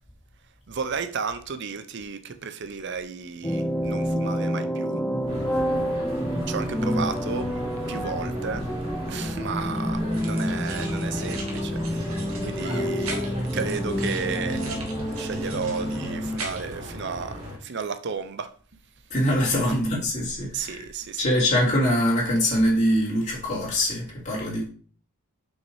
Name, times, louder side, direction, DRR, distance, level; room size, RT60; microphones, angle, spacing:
voice 1, 0.7-5.0 6.5-7.5 7.9-8.7 9.1-13.1 13.5-14.6 15.2-18.5 19.6-19.7 20.5-21.2, right 5 dB, 50° right, 0.6 m, -33 dB
sound 1, 3.4-16.5, equal, 5° left, 0.5 m, -28 dB
sound 2, 5.3-17.6, equal, 30° right, 3.2 m, -37 dB
sound 3, 10.1-16.8, right 4 dB, 75° right, 1.7 m, -40 dB
voice 2, 19.1-20.9 21.2-24.6, equal, 35° left, 3.0 m, -23 dB
6.1 x 5.5 x 4.7 m
head